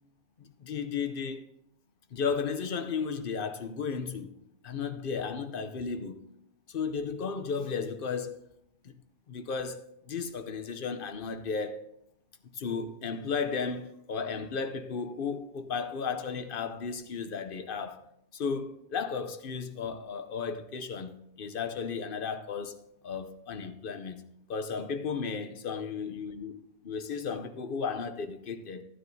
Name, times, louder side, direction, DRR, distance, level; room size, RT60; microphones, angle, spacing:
voice 1, 0.4-1.4 2.1-4.3 4.6-6.2 6.7-8.4 8.8-8.9 9.3-11.8 12.5-18.0 18.3-24.2 24.5-26.6 26.8-28.8, left 5 dB, 50° left, 0.7 m, -34 dB
14.5 x 9.7 x 2.7 m
omnidirectional pair, 1.5 m